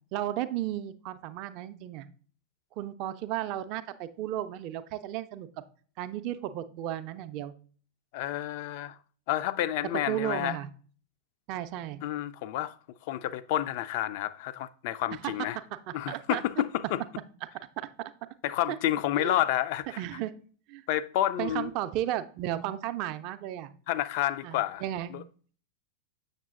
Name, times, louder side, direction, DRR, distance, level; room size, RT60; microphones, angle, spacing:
voice 1, 0.1-2.1 2.8-5.5 6.0-7.5 10.1-10.7 11.5-12.0 15.2-15.3 16.1-16.4 17.8-17.9 18.7-18.8 19.2-19.4 20.0-20.3 20.7-20.8 21.4-23.7 24.4-25.1, right 12 dB, 40° right, 0.4 m, -34 dB
voice 2, 8.1-9.0 9.3-10.6 12.0-12.8 13.1-15.6 15.9-17.0 18.4-20.0 20.9-21.7 23.9-24.8 25.1-25.2, left 13 dB, 50° left, 0.3 m, -30 dB
7.2 x 6.5 x 2.4 m
figure-of-eight pair, 90°, 0 cm